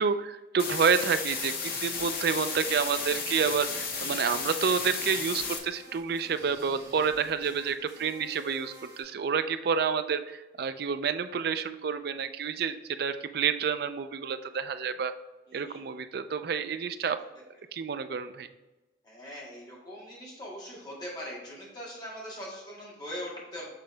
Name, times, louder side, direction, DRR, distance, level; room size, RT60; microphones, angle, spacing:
voice 1, 0.0-15.1 15.5-17.2 17.7-18.5, right 6 dB, 60° right, 10 dB, 0.4 m, -29 dB
sound 1, 0.6-5.6, left 5 dB, 55° left, 0.9 m, -34 dB
sound 2, 1.3-9.0, equal, 20° right, 1.5 m, -50 dB
voice 2, 15.5-15.8 19.0-23.7, equal, 25° left, -5 dB, 2.0 m, -41 dB
7.3 x 3.8 x 3.3 m, 1.1 s
head